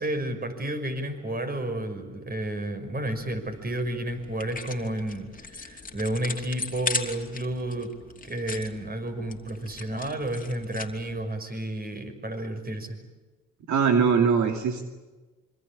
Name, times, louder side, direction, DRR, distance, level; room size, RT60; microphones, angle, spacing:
voice 1, 0.0-7.9 8.2-13.0, right 1 dB, 30° right, 7 dB, 5.9 m, -31 dB
sound 1, 3.0-11.2, left 3 dB, 25° left, 3.0 m, -38 dB
voice 2, 13.7-14.8, right 6 dB, 70° right, 5 dB, 2.6 m, -21 dB
26.5 x 24.5 x 8.8 m, 1.2 s
cardioid pair, 90°, 30 cm